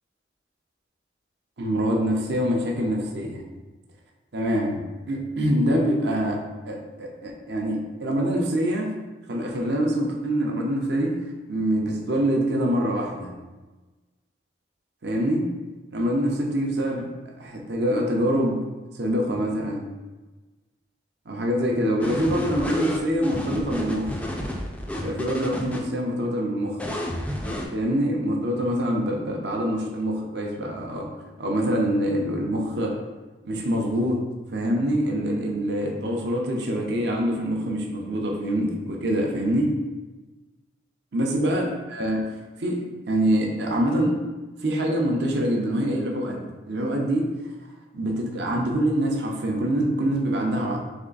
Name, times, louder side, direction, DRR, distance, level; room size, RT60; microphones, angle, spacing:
voice 1, 1.6-3.4 4.3-4.8 5.1-8.9 9.3-11.2 11.5-13.3 15.0-15.5 15.9-17.1 17.4-18.6 18.9-19.8 21.3-24.2 25.0-26.8 27.7-31.1 31.4-33.0 33.4-34.2 34.5-39.8 41.1-42.3 42.6-44.2 44.6-47.3 47.9-50.8, equal, 65° right, 0 dB, 0.7 m, -25 dB
sound 1, 22.0-25.8 26.8-27.7, equal, 5° left, 0.3 m, -30 dB
3.5 x 3.3 x 3.9 m, 1.2 s
head